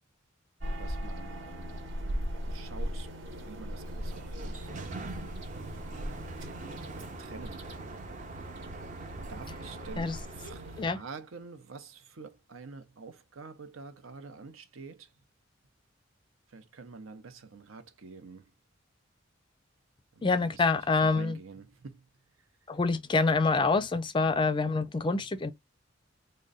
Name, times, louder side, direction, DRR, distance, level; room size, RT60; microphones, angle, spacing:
sound 1, 0.6-10.9, equal, 65° right, 1.0 m, -39 dB
voice 1, 0.8-1.8 2.5-5.1 7.2-8.0 9.3-15.1 16.5-18.5 20.1-20.7 21.0-22.1 22.4-22.5, right 4 dB, 85° right, 0.7 m, -47 dB
Sliding door, 3.7-11.0, right 2 dB, 40° right, 0.6 m, -43 dB
voice 2, 20.2-21.4 22.7-25.5, left 3 dB, 25° left, 0.4 m, -26 dB
3.8 x 2.2 x 3.7 m
head